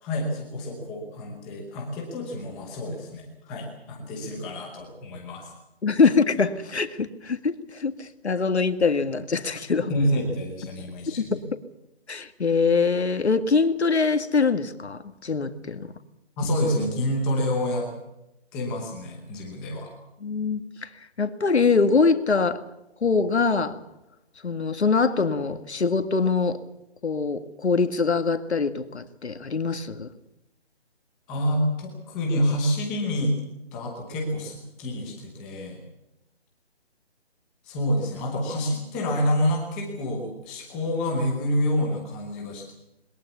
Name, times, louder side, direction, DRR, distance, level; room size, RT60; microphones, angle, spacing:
voice 1, 0.0-5.5 9.9-11.4 16.4-17.9 18.5-19.9 31.3-33.3 33.7-35.8 37.6-42.7, equal, 5° left, -1 dB, 0.9 m, -28 dB
voice 2, 5.8-9.9 11.2-11.4 12.1-15.9 20.2-20.9 21.2-22.6 23.0-23.8 24.4-26.6 27.0-30.1, left 4 dB, 85° left, 9 dB, 2.0 m, -23 dB
21.5 x 20.0 x 6.9 m, 0.91 s
hypercardioid pair, 175°, 32 cm